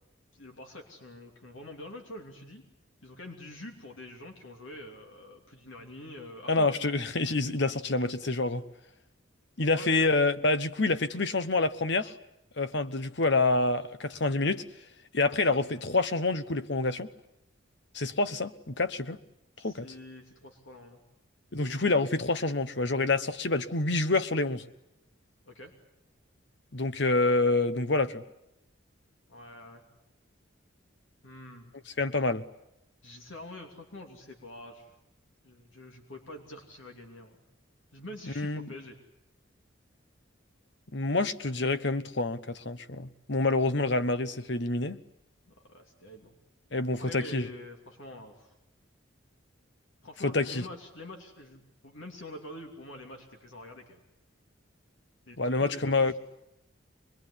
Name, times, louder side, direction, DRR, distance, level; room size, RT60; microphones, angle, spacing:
voice 1, 0.3-2.6 3.0-6.7 9.7-10.3 19.6-21.0 25.4-25.7 29.3-29.8 31.2-31.7 33.0-34.9 35.4-37.4 37.9-39.0 45.5-46.4 46.9-48.5 50.0-54.0 55.3-56.2, left 1 dB, 75° left, 3.0 m, -46 dB
voice 2, 6.5-8.6 9.6-12.1 12.6-14.6 15.1-17.1 17.9-19.2 19.6-19.9 21.5-24.6 26.7-28.2 32.0-32.4 38.4-38.7 40.9-45.0 46.7-47.5 50.2-50.7 55.4-56.1, left 3 dB, 55° left, 1.1 m, -27 dB
25.5 x 21.0 x 10.0 m
head